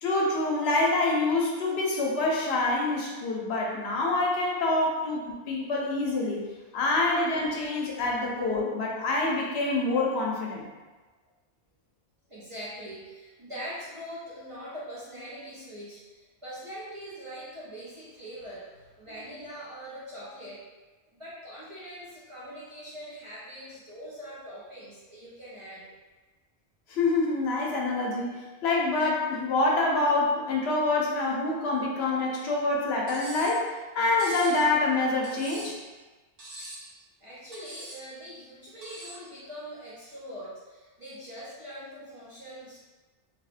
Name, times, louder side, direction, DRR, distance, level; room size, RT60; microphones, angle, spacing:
voice 1, 0.0-6.4 6.7-10.7 26.9-33.7 33.9-35.8, left 2 dB, 80° left, -2 dB, 0.8 m, -26 dB
voice 2, 12.3-20.6 21.1-25.9 37.2-42.8, equal, 40° right, -9 dB, 0.5 m, -42 dB
Cutlery silverware, 33.1-33.6 34.2-34.6 35.2-35.8 36.4-36.9 37.5-38.0 38.8-39.2, right 1 dB, 70° right, 1.0 m, -43 dB
2.9 x 2.0 x 2.4 m, 1.3 s
omnidirectional pair, 1.1 m